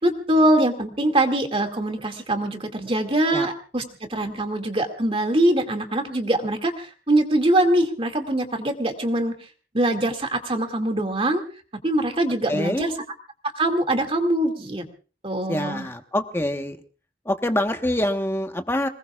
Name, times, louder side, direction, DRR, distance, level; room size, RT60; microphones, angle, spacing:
voice 1, 0.0-9.3 9.7-11.4 11.8-12.9 13.5-14.8 15.2-15.9, right 1 dB, 30° right, 6 dB, 2.2 m, -23 dB
voice 2, 12.5-12.9 15.5-16.8 17.2-18.9, left 1 dB, 15° left, 6 dB, 1.2 m, -25 dB
26.5 x 20.0 x 2.4 m, 0.36 s
head